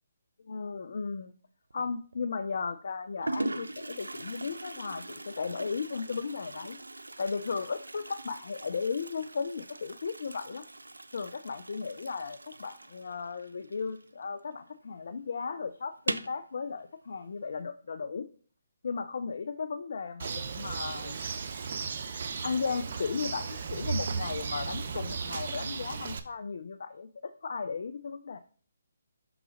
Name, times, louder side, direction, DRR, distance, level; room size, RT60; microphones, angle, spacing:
voice 1, 0.5-1.3 1.7-6.8 7.2-10.6 11.1-18.3 18.8-21.2 22.4-28.4, left 5 dB, 60° left, 10 dB, 0.4 m, -35 dB
Toilet flush, 1.7-2.2 2.9-3.0 3.2-14.5 14.8-14.9 15.2-15.3 15.9-16.4, right 2 dB, 85° right, 0.5 m, -40 dB
Bird, 20.2-26.2, right 5 dB, 50° right, 0.7 m, -35 dB
6.0 x 3.9 x 4.9 m, 0.43 s
figure-of-eight pair, 145°, 0 cm